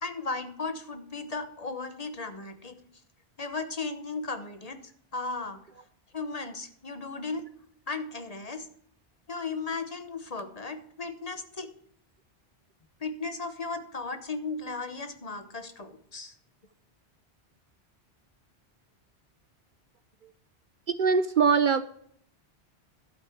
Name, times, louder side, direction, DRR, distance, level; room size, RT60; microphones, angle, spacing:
voice 1, 0.0-2.8 3.4-5.6 6.1-7.4 7.9-8.7 9.3-11.7 13.0-16.3, left 3 dB, 40° left, 8 dB, 1.0 m, -36 dB
voice 2, 20.9-21.8, right 5 dB, 55° right, 12 dB, 0.6 m, -22 dB
12.0 x 8.2 x 4.5 m, 0.65 s
omnidirectional pair, 1.1 m